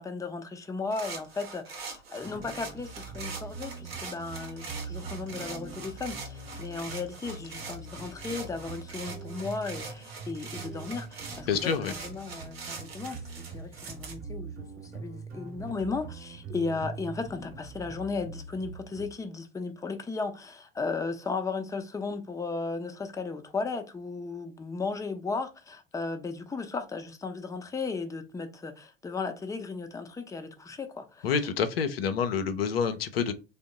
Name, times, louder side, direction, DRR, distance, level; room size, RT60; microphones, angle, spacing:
voice 1, 0.0-13.2 13.5-31.3, left 4 dB, 10° left, 0.6 m, -35 dB
sound 1, 0.9-14.1, right 4 dB, 85° right, 0.8 m, -43 dB
sound 2, 2.2-19.1, right 4 dB, 30° right, 0.9 m, -43 dB
voice 2, 11.5-11.9 31.2-33.3, left 6 dB, 75° left, 0.5 m, -27 dB
3.5 x 2.0 x 3.7 m
figure-of-eight pair, 65°, 30 cm